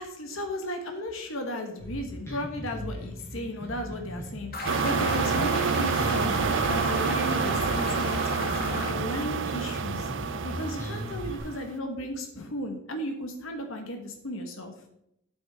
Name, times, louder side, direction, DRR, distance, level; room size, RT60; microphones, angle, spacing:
voice 1, 0.0-6.3 6.7-14.7, left 1 dB, 75° left, 4 dB, 1.3 m, -35 dB
Bass guitar, 1.8-11.4, equal, 15° left, 3.8 m, -38 dB
sound 1, 4.5-8.9, left 2 dB, 45° left, 1.8 m, -34 dB
sound 2, 4.7-11.7, right 5 dB, 60° right, 0.5 m, -28 dB
8.9 x 7.9 x 3.6 m, 0.76 s
head